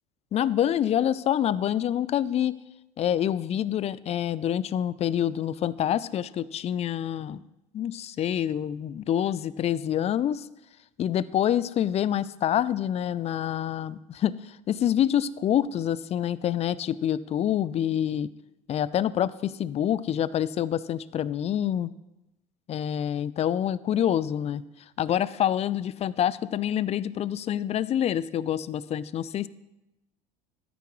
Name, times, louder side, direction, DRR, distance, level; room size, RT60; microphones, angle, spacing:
voice 1, 0.3-2.5 3.0-7.4 7.7-10.4 11.0-14.3 14.7-18.3 18.7-21.9 22.7-24.6 25.0-29.5, left 10 dB, 35° left, 19 dB, 0.5 m, -26 dB
12.5 x 10.0 x 3.2 m, 0.93 s
hypercardioid pair, 70°, 19 cm